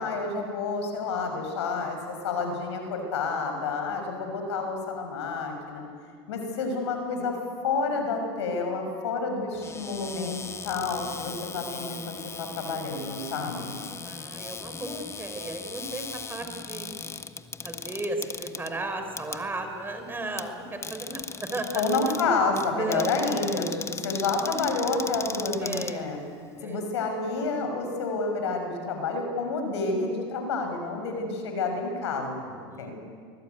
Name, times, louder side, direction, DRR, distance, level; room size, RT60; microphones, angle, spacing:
voice 1, 0.0-2.0 2.2-5.8 6.3-7.4 7.6-13.8 21.7-26.2 26.6-32.9, left 3 dB, 90° left, 4 dB, 6.1 m, -29 dB
Cupboard open or close, 9.5-26.6, left 5 dB, 20° left, 1.2 m, -39 dB
voice 2, 14.0-17.2 17.6-22.0 22.7-23.1 25.6-26.1 26.6-26.8 32.7-32.9, right 2 dB, 15° right, 6 dB, 4.7 m, -35 dB
25.0 x 20.0 x 9.5 m, 2.1 s
supercardioid pair, 100°, 14 cm